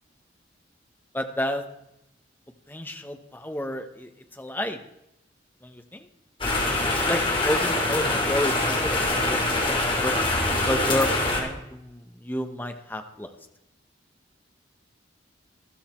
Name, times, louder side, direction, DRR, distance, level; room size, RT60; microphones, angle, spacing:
voice 1, 1.1-1.6 2.7-4.8 5.6-6.1 6.8-10.2 10.7-13.3, left 1 dB, 10° left, 6 dB, 1.0 m, -31 dB
sound 1, 6.4-11.4, left 2 dB, 25° left, 2.9 m, -24 dB
13.5 x 13.5 x 4.4 m, 0.87 s
head